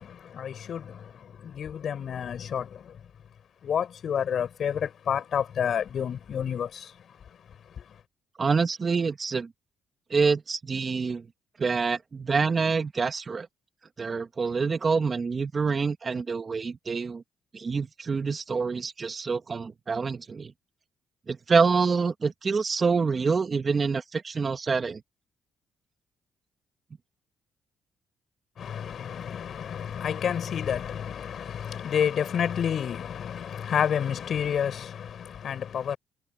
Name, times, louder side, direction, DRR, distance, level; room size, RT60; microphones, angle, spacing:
voice 1, 0.0-3.0 3.6-7.2 7.8-8.0 28.6-36.0, left 8 dB, 60° left, 7.3 m, -30 dB
voice 2, 8.4-9.5 10.1-11.2 11.6-13.5 14.0-17.2 17.5-20.5 21.3-25.0, right 5 dB, 35° right, 2.1 m, -26 dB
cardioid pair, 90°, 0 cm